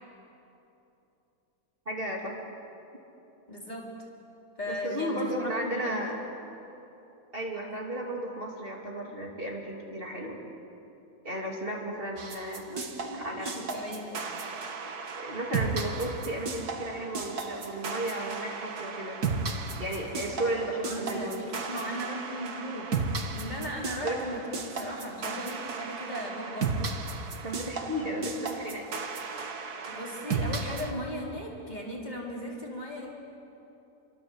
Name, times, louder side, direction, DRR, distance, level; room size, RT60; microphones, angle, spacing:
voice 1, 1.9-2.4 4.7-6.2 7.3-10.4 11.2-12.6 13.2-13.6 15.2-19.2 19.8-21.5 24.0-24.2 27.4-28.9, right 1 dB, 35° right, -1 dB, 3.1 m, -34 dB
voice 2, 3.5-3.9 4.6-6.0 12.7-14.4 20.8-22.9 23.3-26.8 29.9-33.1, equal, 25° left, -3 dB, 4.4 m, -37 dB
sound 1, 12.2-30.9, right 4 dB, 85° right, 2.1 m, -35 dB
28.5 x 23.5 x 8.1 m, 3.0 s
omnidirectional pair, 1.6 m